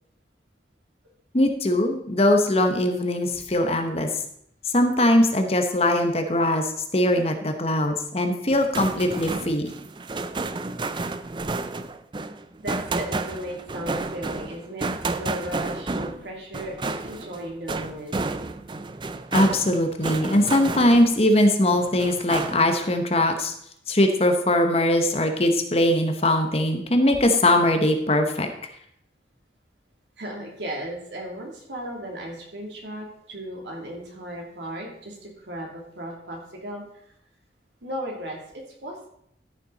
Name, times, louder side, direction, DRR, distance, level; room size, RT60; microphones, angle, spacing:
voice 1, 1.3-4.1 4.7-9.7 19.3-23.5 23.9-28.5, left 1 dB, 35° left, 6 dB, 1.1 m, -21 dB
sound 1, 8.5-21.3 21.7-22.9, right 3 dB, 25° right, 0.5 m, -31 dB
voice 2, 12.6-14.9 15.1-18.1 30.2-36.8 37.8-39.1, equal, 85° right, -1 dB, 3.2 m, -36 dB
13.5 x 6.9 x 4.2 m, 0.71 s
head